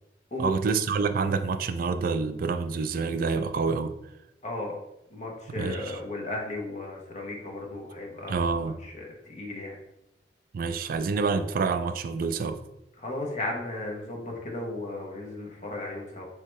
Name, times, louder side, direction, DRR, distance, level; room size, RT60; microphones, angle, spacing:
voice 1, 0.4-4.0 5.5-6.0 8.3-8.8 10.5-12.6, right 4 dB, 55° right, 0.3 m, -27 dB
voice 2, 4.4-4.8 5.1-8.5 8.8-9.8 13.0-16.3, left 2 dB, 40° left, 0.9 m, -35 dB
4.5 x 3.3 x 3.1 m
head